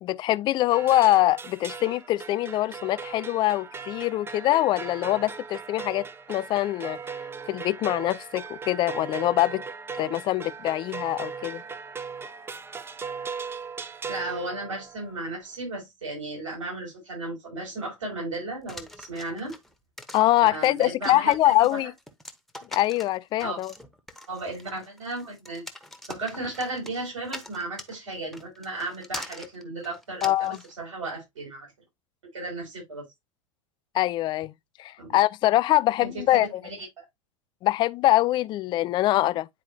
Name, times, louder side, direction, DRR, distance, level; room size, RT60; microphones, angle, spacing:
voice 1, 0.0-7.0 7.5-9.6 10.0-11.6 20.1-21.9 22.7-23.7 30.2-30.6 33.9-34.5 34.8-36.5 37.6-39.5, left 15 dB, 30° left, 0.3 m, -23 dB
sound 1, 0.7-15.1, right 5 dB, 15° right, 0.6 m, -38 dB
voice 2, 14.1-19.5 20.4-21.8 23.4-23.6 24.3-25.6 26.1-31.7 32.3-33.1 35.0-35.2 36.0-37.0, right 2 dB, 70° right, 6.0 m, -35 dB
sound 2, 18.7-30.7, left 1 dB, ahead, 1.1 m, -43 dB
9.8 x 4.6 x 2.7 m
figure-of-eight pair, 85°, 17 cm